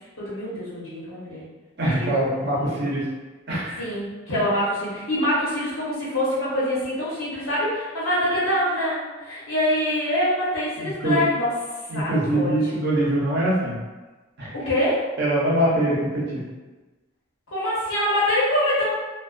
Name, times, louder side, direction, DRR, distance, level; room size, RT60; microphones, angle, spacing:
voice 1, 0.2-1.4 1.8-2.1 2.3-2.8 3.8-11.5 11.9-12.6 14.5-15.1 17.5-18.8, left 1 dB, 80° left, -8 dB, 1.0 m, -25 dB
voice 2, 1.8-3.1 3.5-3.8 10.8-11.2 11.9-13.8 14.4-14.5 15.2-16.4, right 1 dB, 55° right, -5 dB, 0.7 m, -23 dB
2.3 x 2.2 x 2.4 m, 1.2 s
head